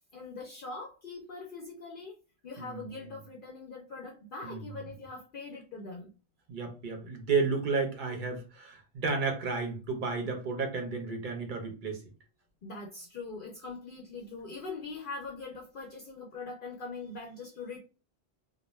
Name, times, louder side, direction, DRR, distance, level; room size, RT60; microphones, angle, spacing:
voice 1, 0.1-2.2 2.4-6.1 12.6-17.8, left 3 dB, 60° left, 0.7 m, -42 dB
voice 2, 2.6-3.1 4.4-4.7 6.5-12.0, right 4 dB, 50° right, 0.8 m, -32 dB
2.5 x 2.1 x 3.0 m
omnidirectional pair, 1.1 m